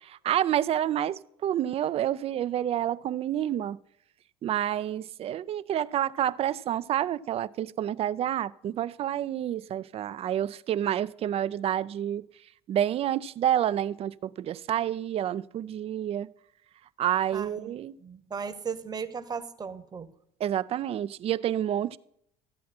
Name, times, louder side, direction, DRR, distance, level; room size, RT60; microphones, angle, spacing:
voice 1, 0.0-3.8 4.4-12.2 12.7-16.3 17.0-18.0 20.4-22.0, right 11 dB, 45° right, 0.4 m, -29 dB
voice 2, 17.3-17.7 18.0-20.1, right 6 dB, 30° right, 1.0 m, -36 dB
13.5 x 8.4 x 4.3 m
supercardioid pair, 75°, 14 cm